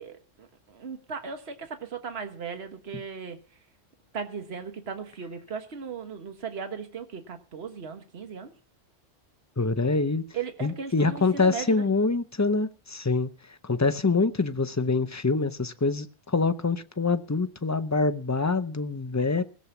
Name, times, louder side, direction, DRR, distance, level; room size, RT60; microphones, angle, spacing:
voice 1, 0.0-3.4 4.1-8.5 10.3-11.8, right 6 dB, 55° right, 1.7 m, -37 dB
voice 2, 9.6-10.2 10.6-19.4, left 3 dB, 20° left, 0.5 m, -25 dB
17.5 x 7.7 x 7.1 m
omnidirectional pair, 1.3 m